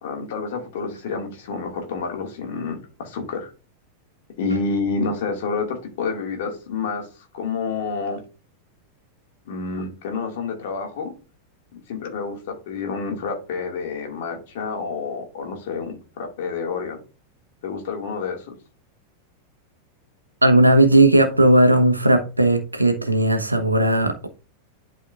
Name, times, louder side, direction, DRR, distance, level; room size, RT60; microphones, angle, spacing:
voice 1, 0.0-3.5 4.4-7.1 7.3-8.2 9.5-11.1 11.9-17.0 17.6-18.5, left 4 dB, 55° left, 2.0 m, -29 dB
voice 2, 20.4-24.3, right 1 dB, 85° right, 1.1 m, -16 dB
11.0 x 4.2 x 2.4 m
figure-of-eight pair, 90°, 0 cm